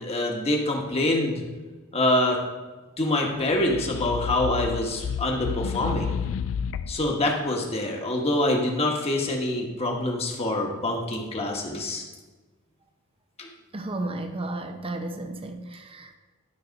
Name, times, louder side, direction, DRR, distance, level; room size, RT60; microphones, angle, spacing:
voice 1, 0.0-1.4 1.9-2.4 3.0-6.1 6.9-12.0 13.4-13.5, left 1 dB, 30° left, 0 dB, 1.4 m, -25 dB
sound 1, 3.5-7.1, left 7 dB, 65° left, 0.3 m, -31 dB
voice 2, 13.7-16.2, right 2 dB, 25° right, 6 dB, 0.7 m, -33 dB
12.0 x 4.2 x 5.2 m, 1.3 s
head